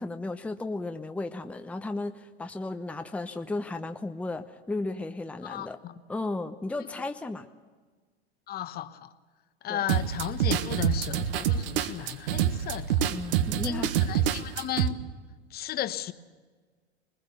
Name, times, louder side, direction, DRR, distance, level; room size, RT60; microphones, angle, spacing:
voice 1, 0.0-5.8 6.1-7.5 9.7-9.8 13.1-13.9, left 2 dB, 5° left, 8 dB, 0.8 m, -34 dB
voice 2, 5.4-5.9 8.5-9.1 9.6-13.0 13.6-15.0 15.5-16.1, left 11 dB, 30° left, 12 dB, 1.0 m, -35 dB
sound 1, 9.9-14.9, right 9 dB, 60° right, 1.5 m, -26 dB
22.0 x 20.5 x 6.8 m, 1.4 s
hypercardioid pair, 100°, 33 cm